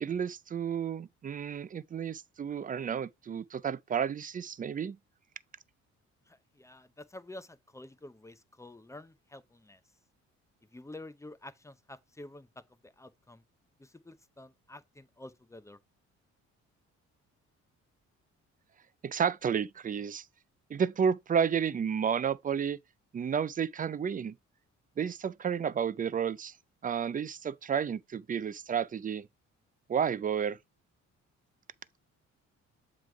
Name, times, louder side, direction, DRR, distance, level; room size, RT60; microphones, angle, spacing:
voice 1, 0.0-5.0 19.0-20.3 20.7-22.8 23.1-24.4 25.0-26.6 26.8-29.3 29.9-30.6, right 7 dB, 30° right, 0.4 m, -31 dB
voice 2, 6.3-9.8 10.7-12.5 12.8-13.4 13.8-15.8, left 1 dB, 10° left, 0.7 m, -49 dB
7.4 x 3.2 x 4.6 m
cardioid pair, 90°, 30 cm